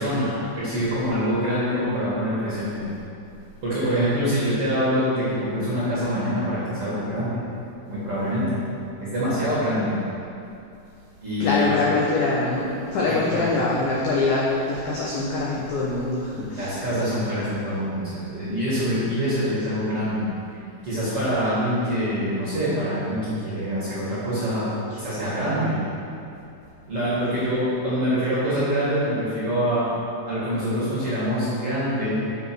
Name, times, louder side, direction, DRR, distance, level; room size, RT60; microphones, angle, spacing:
voice 1, 0.0-2.9 3.6-7.4 7.9-8.6 9.0-9.9 11.2-11.7 13.1-13.6 16.3-20.2 20.8-25.8 26.9-29.8 30.3-32.2, equal, 45° right, -10 dB, 1.9 m, -25 dB
voice 2, 11.4-16.7, left 3 dB, 80° left, -5 dB, 2.1 m, -24 dB
7.1 x 6.7 x 6.1 m, 2.6 s
omnidirectional pair, 5.4 m